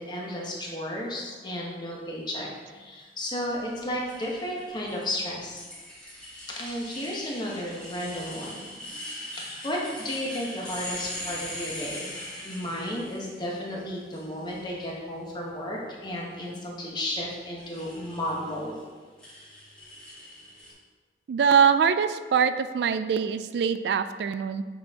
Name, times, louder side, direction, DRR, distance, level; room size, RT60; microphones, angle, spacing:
voice 1, 0.0-5.6 6.5-9.0 9.5-12.1 12.4-18.8, left 1 dB, 25° left, -3 dB, 1.1 m, -33 dB
sound 1, 3.4-13.7 14.1-14.9 17.6-18.6 19.2-20.7, left 1 dB, 5° left, 1.7 m, -41 dB
voice 2, 21.3-24.6, right 7 dB, 70° right, 11 dB, 0.3 m, -23 dB
7.5 x 4.2 x 3.6 m, 1.4 s
head